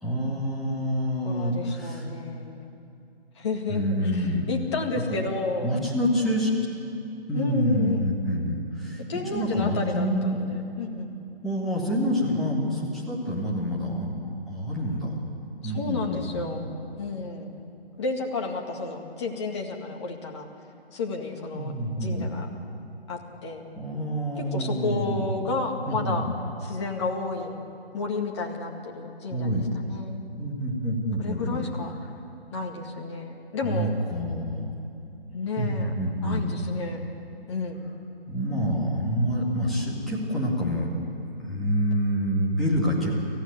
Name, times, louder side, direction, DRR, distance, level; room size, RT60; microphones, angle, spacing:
voice 1, 0.0-2.1 3.7-4.5 4.9-5.2 5.6-6.5 7.3-9.0 9.3-10.4 11.4-14.2 14.5-15.2 15.6-16.4 21.5-22.3 23.8-25.3 25.9-26.3 29.3-29.7 30.4-31.6 33.6-34.7 35.6-36.5 38.3-40.9 41.4-43.3, equal, ahead, -6 dB, 2.2 m, -27 dB
voice 2, 1.2-2.6 3.4-5.7 7.3-8.0 9.1-11.1 15.6-16.7 17.0-17.5 18.0-20.5 20.9-21.7 22.0-22.5 23.1-23.6 24.4-26.3 26.6-27.6 27.9-30.2 31.2-31.9 32.5-34.0 35.3-35.9 36.2-37.0 37.5-37.8, left 4 dB, 25° left, 1 dB, 2.0 m, -31 dB
25.5 x 15.0 x 9.5 m, 2.7 s
figure-of-eight pair, 145°, 32 cm